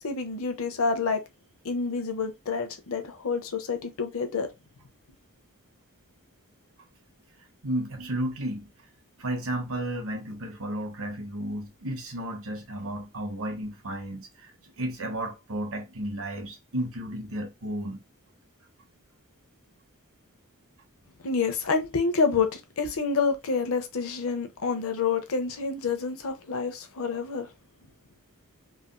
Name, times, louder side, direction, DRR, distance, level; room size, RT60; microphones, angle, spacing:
voice 1, 0.0-1.2 1.6-4.5 21.2-27.5, left 4 dB, 65° left, 0.7 m, -28 dB
voice 2, 7.6-8.7 9.2-18.0, right 1 dB, 65° right, 1.0 m, -33 dB
3.3 x 2.5 x 2.2 m
head